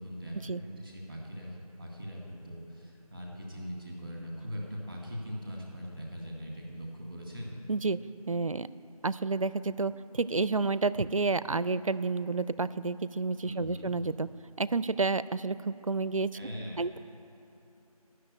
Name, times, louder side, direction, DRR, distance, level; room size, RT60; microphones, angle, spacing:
voice 1, 0.0-7.6 13.4-13.9 16.3-16.9, equal, 10° right, -2 dB, 1.4 m, -41 dB
voice 2, 8.3-8.7 9.0-14.3 14.6-16.3 16.8-17.0, right 3 dB, 60° right, 16 dB, 0.4 m, -30 dB
10.5 x 6.6 x 8.9 m, 2.9 s
figure-of-eight pair, 175°, 20 cm